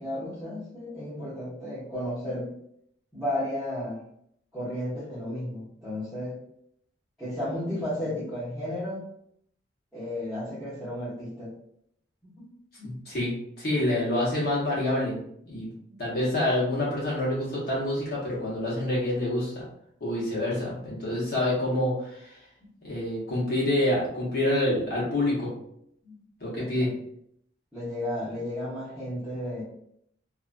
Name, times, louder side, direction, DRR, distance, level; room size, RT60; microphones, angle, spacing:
voice 1, 0.0-2.5 3.1-4.0 4.5-6.4 7.2-9.0 9.9-11.5 12.4-12.5 12.8-12.9 15.9-16.0 26.0-26.2 26.5-26.9 27.7-29.6, left 1 dB, ahead, -15 dB, 1.0 m, -33 dB
voice 2, 12.8-13.3 13.6-15.7 16.0-19.6 20.0-22.4 22.8-25.5 26.4-26.9, left 1 dB, 55° left, -7 dB, 1.2 m, -27 dB
2.7 x 2.4 x 2.5 m, 0.71 s
head